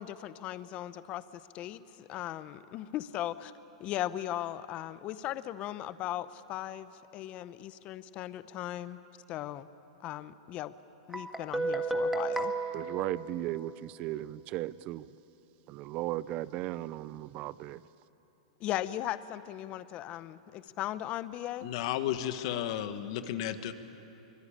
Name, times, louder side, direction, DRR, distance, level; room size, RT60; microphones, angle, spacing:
voice 1, 0.0-3.5 3.8-9.0 9.3-9.7 10.0-10.7 11.1-12.5 18.6-21.7, left 13 dB, 35° left, 15 dB, 0.8 m, -38 dB
Guitar, 11.1-13.9, right 2 dB, 5° right, 1.7 m, -33 dB
voice 2, 12.7-15.1 15.7-17.8, right 15 dB, 40° right, 18 dB, 0.5 m, -36 dB
voice 3, 21.6-23.7, left 11 dB, 55° left, 10 dB, 1.5 m, -33 dB
25.0 x 22.0 x 8.7 m, 2.9 s
hypercardioid pair, 135°, 3 cm